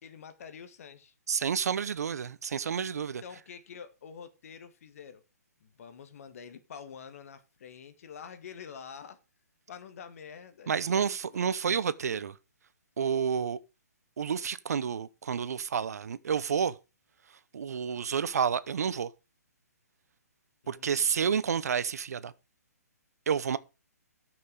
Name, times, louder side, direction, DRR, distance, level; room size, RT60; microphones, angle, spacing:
voice 1, 0.0-1.1 3.2-5.2 5.6-9.2 9.7-11.5 20.6-21.1, left 7 dB, 55° left, 1.7 m, -47 dB
voice 2, 1.3-3.2 10.7-12.3 13.0-13.6 14.2-16.7 17.5-19.1 20.7-22.3 23.3-23.6, right 7 dB, 65° right, 0.9 m, -29 dB
13.5 x 6.1 x 4.9 m
hypercardioid pair, 135°, 9 cm